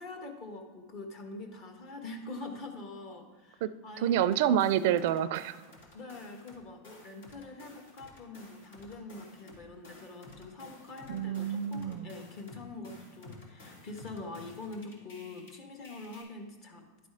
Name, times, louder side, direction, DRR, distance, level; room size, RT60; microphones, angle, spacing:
voice 1, 0.0-4.2 5.9-17.1, left 2 dB, 45° left, 4 dB, 1.5 m, -44 dB
voice 2, 4.0-5.6 11.1-12.1, right 10 dB, 65° right, 14 dB, 0.4 m, -28 dB
sound 1, 4.2-6.6 6.8-15.5 15.8-16.2, left 2 dB, 85° left, 2.6 m, -53 dB
11.5 x 4.2 x 4.9 m, 1.4 s
supercardioid pair, 130°, 0 cm